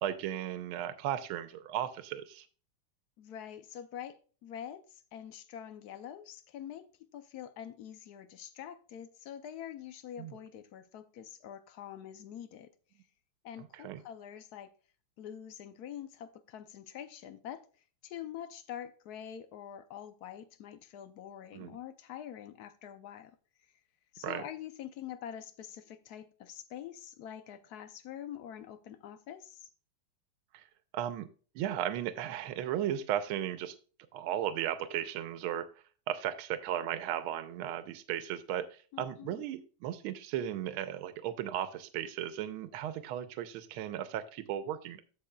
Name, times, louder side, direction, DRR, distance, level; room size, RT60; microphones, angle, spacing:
voice 1, 0.0-2.4 10.2-10.3 13.7-14.0 21.5-21.8 24.2-24.4 30.5-30.6 30.9-31.3 31.5-33.7 34.1-35.7 36.1-45.0, right 11 dB, 80° right, 1.5 m, -35 dB
voice 2, 3.2-12.7 13.4-14.7 15.2-17.7 18.0-23.4 24.1-29.7 38.9-39.4, left 10 dB, 75° left, 0.9 m, -45 dB
15.0 x 5.3 x 2.3 m
omnidirectional pair, 2.4 m